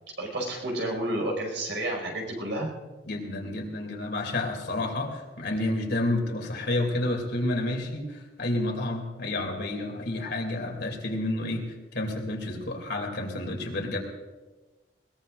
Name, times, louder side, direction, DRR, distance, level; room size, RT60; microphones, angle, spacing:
voice 1, 0.2-2.7, right 1 dB, 80° right, 0 dB, 5.6 m, -30 dB
voice 2, 3.0-11.6 11.9-14.0, left 2 dB, 65° left, 2 dB, 2.8 m, -30 dB
21.5 x 21.0 x 2.6 m, 1.2 s
head